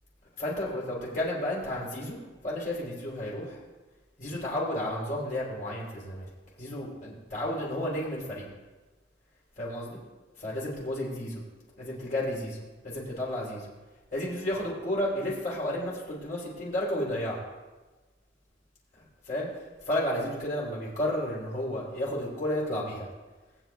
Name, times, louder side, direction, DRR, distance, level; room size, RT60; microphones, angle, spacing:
voice 1, 0.4-2.2 2.4-3.6 4.2-6.3 6.6-8.5 9.6-10.0 10.4-11.4 11.8-13.7 14.1-17.4 18.9-23.1, left 1 dB, 45° left, -6 dB, 3.2 m, -32 dB
20.0 x 8.9 x 2.3 m, 1.2 s
head